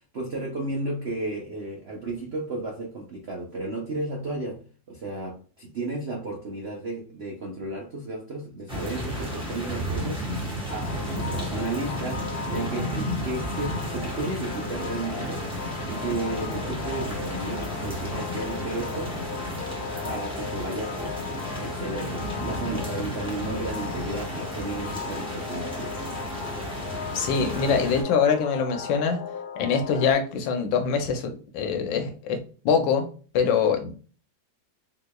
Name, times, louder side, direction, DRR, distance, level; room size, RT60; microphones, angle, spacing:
voice 1, 0.1-4.6 4.9-10.2 10.7-15.4 15.9-19.2 20.0-21.2 21.6-26.0, right 2 dB, 75° right, -1 dB, 0.6 m, -33 dB
sound 1, 8.7-28.0, equal, 10° right, 0.3 m, -33 dB
sound 2, 10.8-30.1, left 7 dB, 70° left, 1.1 m, -37 dB
voice 2, 27.1-29.2 29.6-32.4 32.6-33.1 33.3-33.9, left 6 dB, 90° left, 5 dB, 1.3 m, -24 dB
3.7 x 3.0 x 2.2 m, 0.39 s
omnidirectional pair, 2.0 m